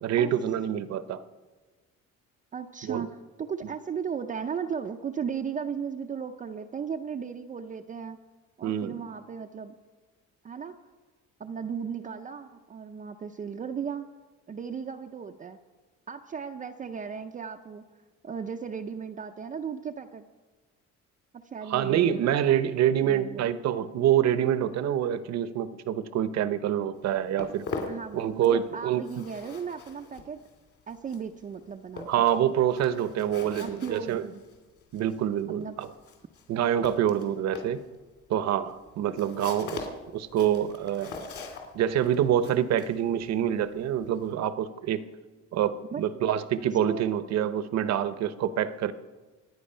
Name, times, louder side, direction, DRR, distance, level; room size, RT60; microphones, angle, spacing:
voice 1, 0.0-1.2 2.8-3.1 8.6-8.9 21.7-27.6 28.1-29.2 32.1-34.2 34.9-35.9 36.5-37.8 38.3-39.9 40.1-41.1 41.7-45.0 45.5-48.9, right 10 dB, 60° right, 13 dB, 0.9 m, -26 dB
voice 2, 2.5-8.2 8.6-9.7 10.4-10.8 11.4-14.1 14.5-15.6 16.1-17.9 18.2-20.3 21.3-22.3 23.0-23.6 27.9-30.4 30.9-32.2 33.5-34.4 35.5-35.8 45.8-46.0 46.9-47.2, right 6 dB, 25° right, 4 dB, 0.5 m, -36 dB
Walk footsteps, 26.9-28.7 28.9-44.3, left 4 dB, 50° left, 2.8 m, -42 dB
25.5 x 9.6 x 5.5 m, 1.3 s
cardioid pair, 165°, 30 cm